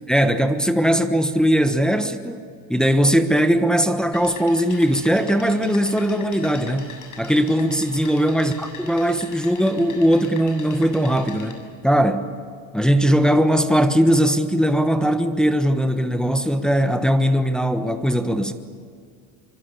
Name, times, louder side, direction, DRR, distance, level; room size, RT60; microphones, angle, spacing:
voice 1, 0.1-2.4 2.7-6.9 7.2-12.3 12.7-18.5, equal, ahead, 1.2 m, -19 dB
sound 1, 4.1-11.5, left 5 dB, 50° left, 7.4 m, -41 dB
24.5 x 24.0 x 8.4 m
cardioid pair, 120°, 39 cm